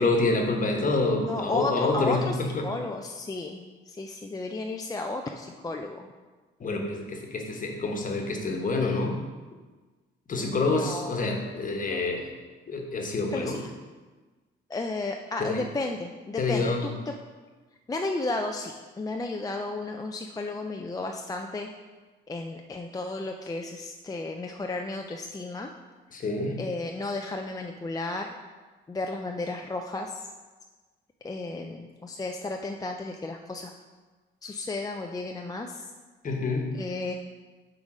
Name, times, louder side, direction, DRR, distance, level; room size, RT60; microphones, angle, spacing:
voice 1, 0.0-2.7 6.6-9.2 10.3-12.4 12.7-13.6 15.4-15.7 16.4-16.9 26.1-26.6 36.2-36.7, left 3 dB, 40° left, 2 dB, 1.2 m, -27 dB
voice 2, 1.2-2.4 2.6-6.1 10.4-11.1 13.3-13.7 14.7-17.1 17.9-21.7 22.3-25.7 26.6-28.3 28.9-30.3 31.2-33.7 34.4-35.9 36.7-37.1, left 2 dB, 20° left, 3 dB, 0.4 m, -33 dB
7.2 x 3.8 x 4.9 m, 1.3 s
cardioid pair, 90°, 20 cm